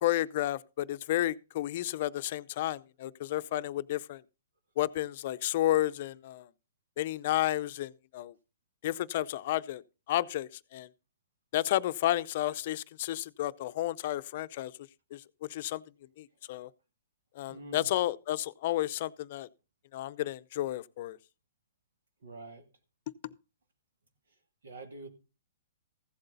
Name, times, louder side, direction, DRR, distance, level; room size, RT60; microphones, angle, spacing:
voice 1, 0.0-4.2 4.8-6.5 7.0-8.3 8.8-9.8 10.1-10.9 11.5-14.7 15.1-15.2 15.5-15.8 16.2-16.7 17.4-19.5 19.9-21.2, left 14 dB, 50° left, 0.6 m, -31 dB
voice 2, 17.5-17.9 22.2-22.6 24.6-25.1, right 2 dB, 85° right, 2.4 m, -45 dB
15.0 x 7.9 x 4.0 m
hypercardioid pair, 140°, 0 cm